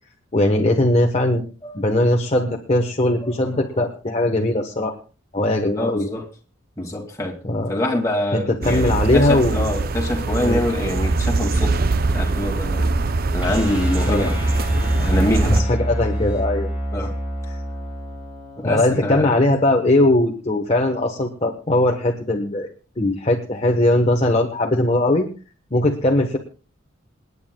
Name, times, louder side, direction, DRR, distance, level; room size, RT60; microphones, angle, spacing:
voice 1, 0.3-1.4 1.7-4.9 5.3-6.1 7.4-7.8 8.3-9.7 10.4-10.7 14.1-14.3 15.4-16.7 17.5-17.6 18.6-22.7 23.0-25.3 25.7-26.4, left 1 dB, 35° left, 1 dB, 1.1 m, -20 dB
voice 2, 5.8-6.2 6.8-7.4 7.7-11.8 12.1-12.9 13.3-14.3 15.0-15.6 16.9-17.1 18.6-19.3, left 1 dB, 15° left, -1 dB, 2.1 m, -24 dB
sound 1, 8.6-15.6, right 3 dB, 50° right, 0.6 m, -22 dB
sound 2, 13.4-19.5, equal, 5° right, 5.9 m, -26 dB
28.0 x 9.6 x 2.2 m, 0.36 s
head